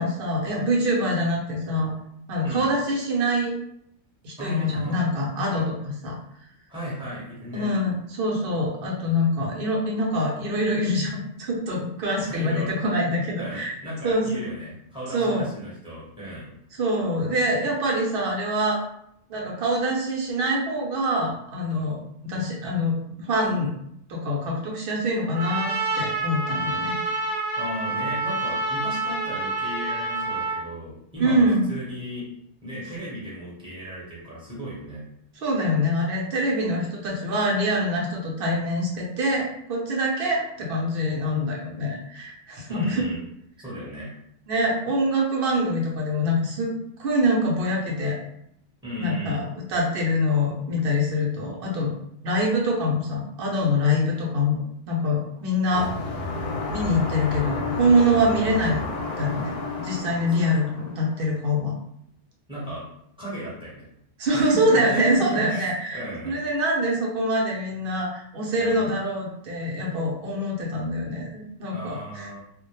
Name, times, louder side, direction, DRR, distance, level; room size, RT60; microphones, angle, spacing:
voice 1, 0.0-1.9 2.3-3.5 4.2-6.2 7.5-13.8 14.0-14.4 15.1-15.5 16.7-18.8 19.3-23.0 23.3-23.7 24.1-27.0 31.2-31.7 35.4-43.0 44.5-46.7 47.0-48.2 49.0-51.9 52.2-54.6 54.9-55.9 56.7-58.8 59.2-61.7 64.2-72.3, equal, 60° right, -2 dB, 0.7 m, -25 dB
voice 2, 4.4-5.0 6.7-7.7 12.2-12.7 13.4-16.5 27.6-32.2 32.6-35.0 42.7-43.2 43.6-44.1 48.8-49.4 62.5-62.8 63.2-63.9 64.3-66.4 68.6-68.9 71.7-72.4, equal, 5° right, -9 dB, 0.8 m, -35 dB
Trumpet, 25.3-30.6, right 2 dB, 85° right, 0.9 m, -28 dB
sound 1, 55.7-61.3, left 3 dB, 65° left, 0.8 m, -31 dB
2.1 x 2.0 x 2.9 m, 0.73 s
omnidirectional pair, 1.2 m